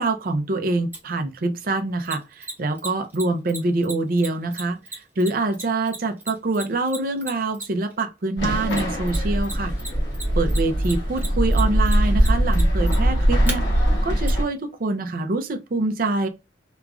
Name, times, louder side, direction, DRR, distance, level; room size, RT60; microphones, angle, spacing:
voice 1, 0.0-9.7 10.3-16.3, right 2 dB, 55° right, 0.5 m, -25 dB
Mechanisms, 0.9-1.0 2.0-7.9 8.7-9.5 9.8-13.5 14.3-14.4, right 2 dB, 10° right, 0.9 m, -34 dB
sound 1, 8.4-14.4, equal, 85° left, 1.1 m, -21 dB
2.9 x 2.4 x 2.4 m
head